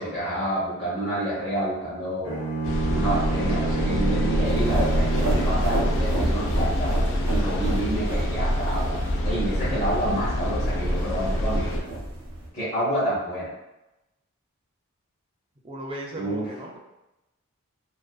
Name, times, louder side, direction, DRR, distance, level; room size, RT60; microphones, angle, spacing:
voice 1, 0.0-2.4 2.9-7.0 7.3-9.0 9.2-11.8 12.5-13.5 16.2-16.5, right 1 dB, 30° left, -12 dB, 0.7 m, -28 dB
Bowed string instrument, 2.2-6.3, right 4 dB, 85° left, 0.9 m, -29 dB
sound 1, 2.6-11.8, equal, 60° left, 0.3 m, -25 dB
sound 2, 4.4-12.5, right 1 dB, 75° right, 0.6 m, -33 dB
voice 2, 15.6-16.8, right 1 dB, 25° right, -1 dB, 0.3 m, -36 dB
2.4 x 2.2 x 2.3 m, 0.95 s
head